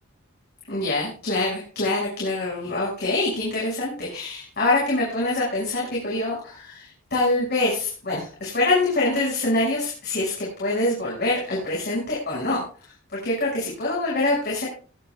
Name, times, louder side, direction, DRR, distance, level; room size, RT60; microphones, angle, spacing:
voice 1, 0.7-12.6 13.2-14.7, left 2 dB, 50° left, -5 dB, 6.1 m, -25 dB
21.5 x 10.0 x 2.4 m, 0.40 s
head